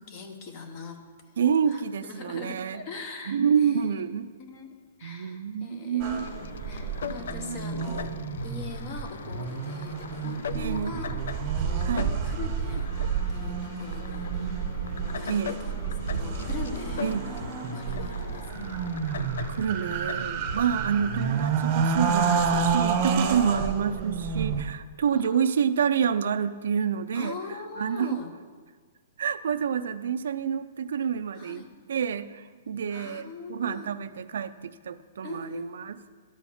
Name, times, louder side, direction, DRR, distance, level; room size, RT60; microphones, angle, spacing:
voice 1, 0.1-1.0 1.7-4.0 4.4-6.3 6.7-11.2 11.5-12.9 13.3-14.6 15.2-15.7 16.1-17.4 17.7-18.9 23.5-23.7 25.1-25.5 27.1-28.3 31.3-31.7 32.9-33.9 35.2-35.9, left 4 dB, 30° left, 6 dB, 0.9 m, -42 dB
voice 2, 1.4-2.8 3.3-4.3 5.0-6.3 7.4-7.6 10.5-10.9 11.8-12.1 15.3-15.6 17.0-17.3 19.5-27.4 27.8-28.1 29.2-36.0, right 7 dB, 65° right, 12 dB, 0.4 m, -28 dB
sound 1, 6.0-20.6, left 6 dB, 70° left, 0.4 m, -40 dB
sound 2, 6.0-24.6, right 6 dB, 25° right, 0.8 m, -29 dB
11.5 x 4.2 x 7.2 m, 1.5 s
hypercardioid pair, 170°, 0 cm